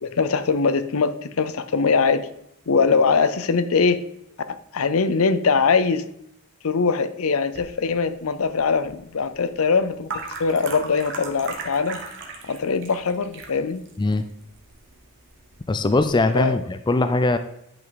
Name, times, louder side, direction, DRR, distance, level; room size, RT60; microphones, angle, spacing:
voice 1, 0.0-2.3 2.7-4.0 4.7-6.0 6.6-10.1 10.4-12.0 12.4-13.8 16.3-16.6, left 5 dB, 70° left, 13 dB, 0.6 m, -21 dB
sound 1, 7.5-16.2, right 3 dB, 55° right, 1.4 m, -39 dB
voice 2, 15.7-17.4, left 2 dB, 20° left, 10 dB, 0.4 m, -21 dB
10.5 x 5.5 x 3.9 m, 0.77 s
head